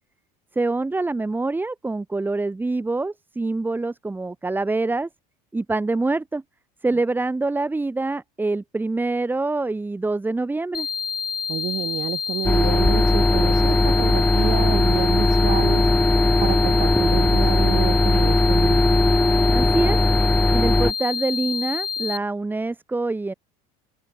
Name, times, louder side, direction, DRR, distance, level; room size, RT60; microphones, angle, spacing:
voice 1, 0.5-5.1 5.5-6.4 6.8-10.9 19.5-20.0 20.5-23.3, right 3 dB, 10° right, 2.9 m, -25 dB
sound 1, 10.7-22.2, left 6 dB, 25° left, 2.7 m, -28 dB
voice 2, 11.5-15.9 16.4-19.0, right 12 dB, 40° right, 3.7 m, -29 dB
sound 2, 12.4-20.9, left 2 dB, 5° left, 5.3 m, -18 dB
supercardioid pair, 125°, 19 cm